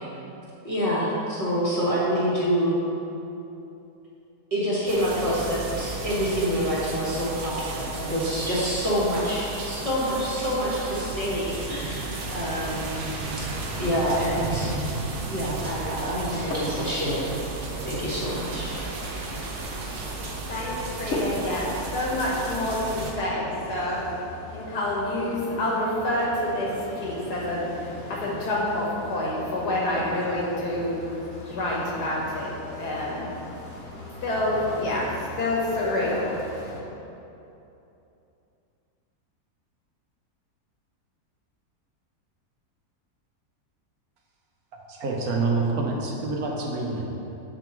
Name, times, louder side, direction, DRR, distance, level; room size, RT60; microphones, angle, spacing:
voice 1, 0.6-2.8 4.5-13.0 13.4-13.5 13.8-14.7 15.3-17.4 17.8-18.7, equal, 25° right, -8 dB, 1.3 m, -27 dB
sound 1, 4.9-23.1, right 3 dB, 55° right, 0.6 m, -34 dB
sound 2, 10.7-20.3, right 2 dB, 85° right, 1.4 m, -41 dB
sound 3, 16.1-34.1, left 1 dB, 50° left, 1.2 m, -42 dB
voice 2, 19.9-36.8, left 1 dB, 85° left, -4 dB, 1.8 m, -28 dB
voice 3, 44.9-47.2, right 3 dB, 70° right, -1 dB, 1.2 m, -27 dB
7.4 x 3.8 x 4.4 m, 2.9 s
omnidirectional pair, 1.7 m